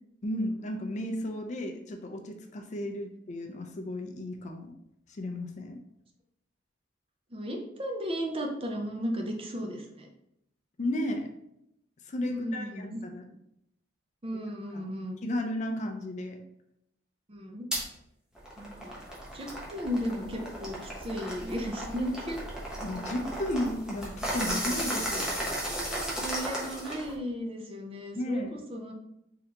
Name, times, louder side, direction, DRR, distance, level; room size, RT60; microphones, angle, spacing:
voice 1, 0.2-4.8 5.1-5.8 10.8-11.3 12.1-13.2 14.7-14.8 15.2-16.4 22.8-25.5 28.2-28.6, left 1 dB, 40° left, 4 dB, 0.5 m, -34 dB
voice 2, 7.3-10.1 12.3-13.0 14.2-15.2 17.3-17.7 18.6-19.0 19.3-22.4 26.2-28.9, equal, 30° right, 2 dB, 0.5 m, -35 dB
sound 1, 17.7-17.8 18.3-27.1, equal, 5° right, 0.9 m, -35 dB
3.8 x 3.3 x 2.8 m, 0.80 s
head